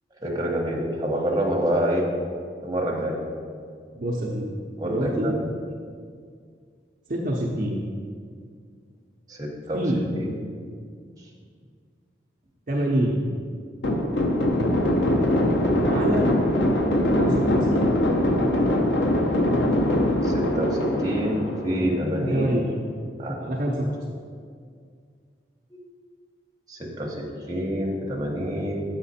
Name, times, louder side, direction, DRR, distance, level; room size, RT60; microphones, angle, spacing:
voice 1, 0.2-2.1 2.6-3.2 4.8-5.3 9.3-9.8 10.2-10.4 20.2-22.7 23.2-23.4 25.7-25.8 26.7-28.8, equal, 20° right, -2 dB, 1.0 m, -27 dB
voice 2, 3.9-4.5 4.8-5.3 7.1-7.8 9.7-10.0 12.7-13.2 15.8-16.3 17.2-17.8 22.3-22.7 23.4-24.2, right 1 dB, 45° right, -2 dB, 0.6 m, -26 dB
sound 1, 13.8-22.1, left 1 dB, 80° left, 0.8 m, -22 dB
7.2 x 5.8 x 4.2 m, 2.1 s
head